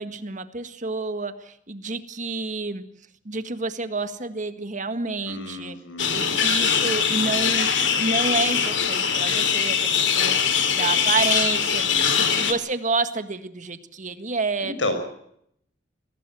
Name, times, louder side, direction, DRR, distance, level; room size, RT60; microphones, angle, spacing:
voice 1, 0.0-2.8 3.3-5.8 6.1-7.7 8.0-14.7, right 3 dB, 40° right, 10 dB, 1.7 m, -29 dB
voice 2, 5.3-6.4 11.8-12.5 14.6-14.9, left 2 dB, 90° left, 8 dB, 5.9 m, -32 dB
sound 1, 6.0-12.5, left 7 dB, 70° left, 2.9 m, -22 dB
23.5 x 17.5 x 7.7 m, 0.71 s
head